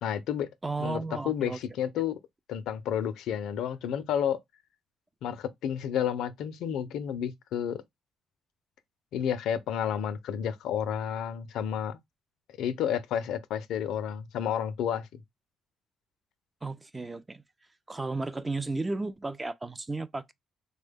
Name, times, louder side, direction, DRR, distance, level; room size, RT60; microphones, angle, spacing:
voice 1, 0.0-0.5 0.8-2.2 2.5-4.4 5.2-7.8 9.1-12.0 12.6-15.2, left 9 dB, 75° left, 0.4 m, -31 dB
voice 2, 0.6-1.6 16.6-17.4 17.9-20.3, right 3 dB, 20° right, 0.3 m, -34 dB
3.4 x 2.1 x 3.4 m
cardioid pair, 80°, 0 cm